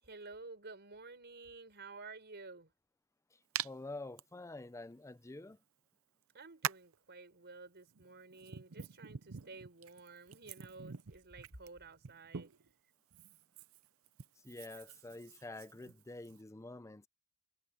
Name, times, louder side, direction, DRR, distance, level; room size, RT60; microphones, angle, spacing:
voice 1, 0.0-2.7 6.3-12.5, right 3 dB, 50° right, 5.2 m, -52 dB
voice 2, 3.3-5.6 14.4-17.1, left 2 dB, 15° left, 0.5 m, -48 dB
Hands, 3.6-3.7 4.2-4.3 5.5-5.6 6.6-7.0 7.9-12.7 13.1-16.4, right 9 dB, 65° right, 0.7 m, -45 dB
head